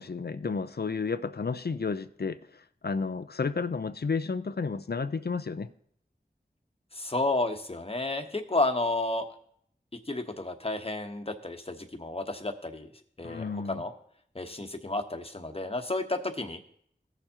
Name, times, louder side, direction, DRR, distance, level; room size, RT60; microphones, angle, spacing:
voice 1, 0.0-2.4 2.8-5.7 13.2-13.8, left 4 dB, 65° left, 0.5 m, -31 dB
voice 2, 6.9-9.2 10.1-12.9 13.2-13.9 14.3-16.6, left 2 dB, 35° left, 1.1 m, -31 dB
16.5 x 6.9 x 2.9 m
wide cardioid pair, 40°, 18 cm